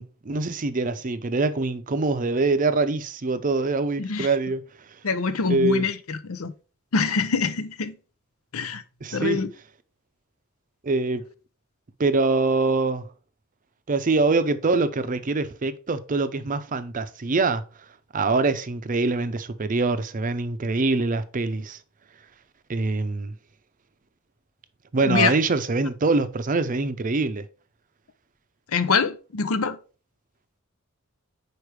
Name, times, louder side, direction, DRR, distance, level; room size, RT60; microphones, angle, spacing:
voice 1, 0.0-4.6 5.5-5.8 9.0-9.4 10.8-11.2 12.0-13.0 13.9-17.6 18.1-21.8 22.7-23.3 24.9-27.5, right 3 dB, 40° right, 0.5 m, -24 dB
voice 2, 4.0-4.3 5.0-6.5 6.9-7.9 8.5-8.8 9.1-9.5 25.0-25.3 28.7-29.8, left 5 dB, 85° left, 0.7 m, -24 dB
4.9 x 4.7 x 4.7 m
head